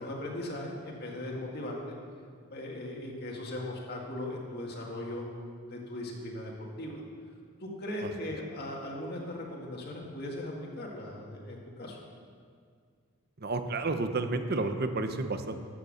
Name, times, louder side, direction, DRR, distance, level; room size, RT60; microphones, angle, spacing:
voice 1, 0.0-1.9 2.5-5.2 5.7-7.0 7.6-12.0, left 1 dB, 50° left, -1 dB, 1.9 m, -38 dB
voice 2, 13.4-15.6, right 3 dB, 45° right, 8 dB, 0.8 m, -31 dB
13.0 x 8.2 x 6.5 m, 2.1 s
head